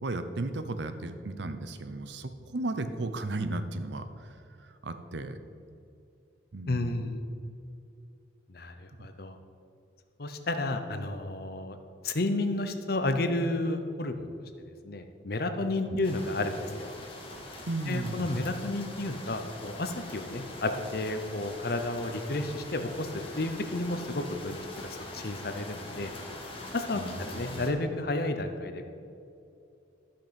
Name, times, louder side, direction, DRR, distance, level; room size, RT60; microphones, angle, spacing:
voice 1, 0.0-5.4 6.5-7.1 15.9-16.0 17.7-18.3 26.9-27.7, right 2 dB, 70° right, 10 dB, 0.7 m, -35 dB
voice 2, 6.7-7.2 8.5-9.3 10.2-11.8 12.0-14.3 14.6-16.9 17.9-23.1 23.4-24.6 25.1-26.1 26.7-27.0 27.3-28.9, left 2 dB, 55° left, 7 dB, 0.8 m, -31 dB
sound 1, 16.0-27.7, left 2 dB, 30° left, 1.3 m, -43 dB
13.5 x 5.9 x 5.2 m, 2.6 s
head